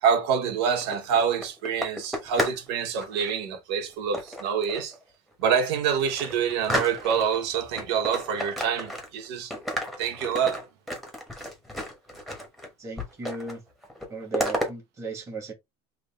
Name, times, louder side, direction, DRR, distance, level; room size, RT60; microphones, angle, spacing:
voice 1, 0.0-4.9 5.4-9.5 10.0-10.6, right 7 dB, 80° right, 1.1 m, -26 dB
sound 1, 0.7-2.7 2.9-3.3 4.1-5.0 5.4-5.5 5.8-7.4 7.8-9.3 9.5-12.7 13.0-13.6 13.8-14.7, left 1 dB, ahead, 1.0 m, -32 dB
voice 2, 12.8-13.6 14.1-15.5, right 4 dB, 20° right, 1.5 m, -36 dB
3.6 x 2.6 x 3.4 m
cardioid pair, 140°, 14 cm